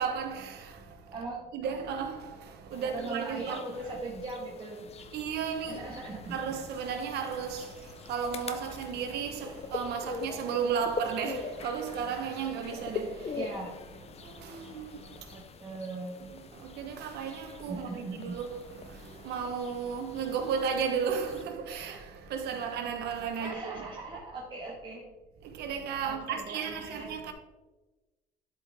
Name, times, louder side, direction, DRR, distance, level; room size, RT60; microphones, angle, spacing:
voice 1, 0.0-1.2 1.5-3.6 3.9-4.0 5.1-5.9 6.3-13.4 14.2-15.3 16.2-23.8 25.4-27.3, right 6 dB, 75° right, 1.3 m, -34 dB
voice 2, 1.1-1.4 2.8-4.9 5.7-6.4 13.3-13.7 15.3-16.3 17.7-18.4 23.4-25.0 26.0-27.1, right 2 dB, 30° right, 1.8 m, -39 dB
sound 1, 2.7-21.4, left 4 dB, 40° left, 0.7 m, -43 dB
11.5 x 5.1 x 3.7 m
cardioid pair, 110°, 17 cm